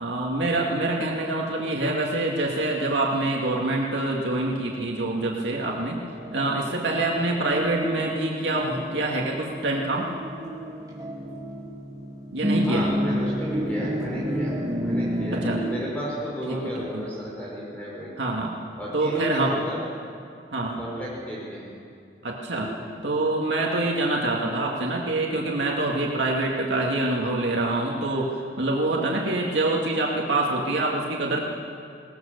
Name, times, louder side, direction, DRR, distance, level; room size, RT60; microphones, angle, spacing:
voice 1, 0.0-6.0 6.3-10.1 12.3-12.9 15.3-15.6 16.5-16.6 16.9-17.0 18.2-18.5 18.9-19.5 20.5-20.8 22.2-22.7 23.0-28.3 28.6-31.4, right 2 dB, 85° right, -2 dB, 2.2 m, -25 dB
sound 1, 5.7-15.6, equal, 20° right, 2.5 m, -30 dB
voice 2, 12.7-18.1 18.8-19.8 20.8-21.7 22.6-22.7, equal, 10° left, -6 dB, 5.4 m, -33 dB
21.5 x 18.5 x 6.7 m, 2.4 s
head